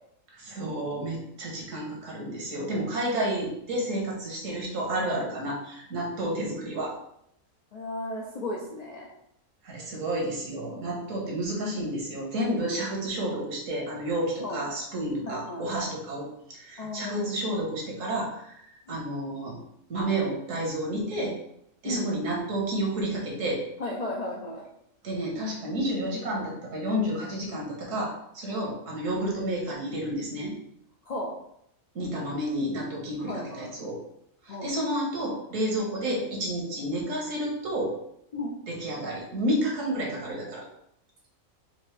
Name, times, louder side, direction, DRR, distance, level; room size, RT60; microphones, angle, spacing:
voice 1, 0.3-7.0 9.6-18.6 18.9-19.6 19.9-21.4 21.8-23.6 25.0-30.5 31.9-34.0 34.4-37.9 38.7-40.6, right 1 dB, 70° right, -2 dB, 1.4 m, -30 dB
voice 2, 2.5-3.0 4.9-5.4 7.7-9.1 14.4-14.6 15.2-15.9 16.8-17.3 18.9-19.0 21.8-22.2 23.8-24.6 28.5-28.6 31.1-31.3 33.2-33.7 34.5-34.7 38.3-38.5, left 1 dB, 60° left, -2 dB, 0.4 m, -35 dB
4.6 x 2.5 x 3.2 m, 0.74 s
omnidirectional pair, 1.4 m